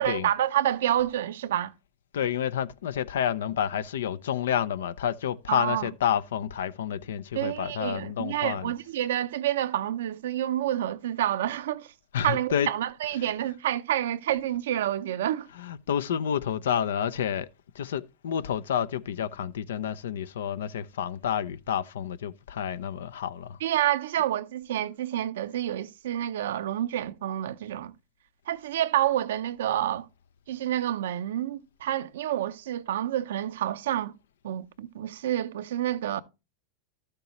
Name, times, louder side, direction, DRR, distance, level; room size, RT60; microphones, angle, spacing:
voice 1, 0.0-1.7 5.5-5.9 7.3-11.9 12.2-15.5 23.6-27.9 28.5-30.1 30.5-34.1 34.4-36.2, right 12 dB, 75° right, 0.6 m, -28 dB
voice 2, 2.1-8.7 12.1-12.7 15.6-17.5 17.7-23.6, left 9 dB, 80° left, 0.5 m, -29 dB
12.5 x 6.6 x 3.0 m
hypercardioid pair, 100°, 0 cm